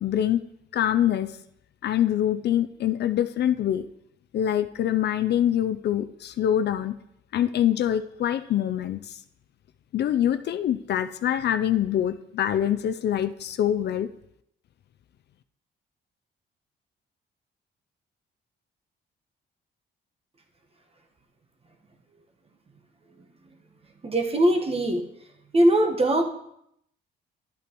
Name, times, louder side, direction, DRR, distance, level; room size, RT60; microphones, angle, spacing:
voice 1, 0.0-0.4 0.7-1.3 1.8-3.9 4.3-7.0 7.3-9.2 9.9-14.1, left 10 dB, 60° left, 11 dB, 0.4 m, -24 dB
voice 2, 24.0-25.0 25.5-26.3, right 1 dB, 30° right, 4 dB, 1.2 m, -21 dB
12.0 x 8.2 x 3.0 m, 0.76 s
cardioid pair, 90°, 20 cm